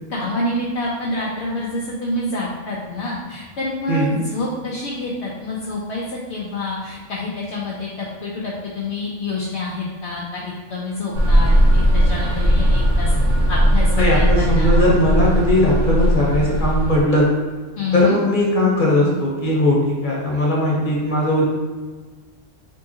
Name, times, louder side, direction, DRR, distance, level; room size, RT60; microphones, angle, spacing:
voice 1, 0.1-13.1 13.5-14.8 17.8-18.2, left 2 dB, 65° left, -5 dB, 0.8 m, -27 dB
sound 1, 11.1-17.0, equal, 85° right, 1.2 m, -17 dB
voice 2, 14.0-17.3 17.9-21.4, left 1 dB, 40° left, -4 dB, 1.1 m, -18 dB
3.6 x 3.0 x 2.7 m, 1.4 s
omnidirectional pair, 1.3 m